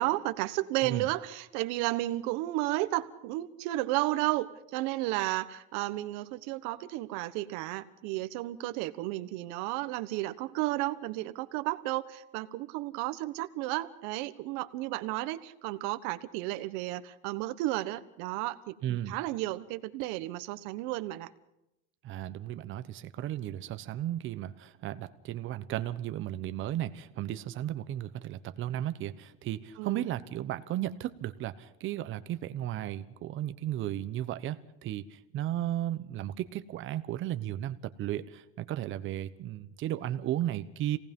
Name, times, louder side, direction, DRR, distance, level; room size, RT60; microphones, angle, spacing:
voice 1, 0.0-21.3 29.8-30.0, right 17 dB, 70° right, 12 dB, 1.3 m, -33 dB
voice 2, 18.8-19.2 22.0-41.0, right 12 dB, 45° right, 11 dB, 1.1 m, -35 dB
27.0 x 18.5 x 5.4 m, 0.85 s
cardioid pair, 155°, 29 cm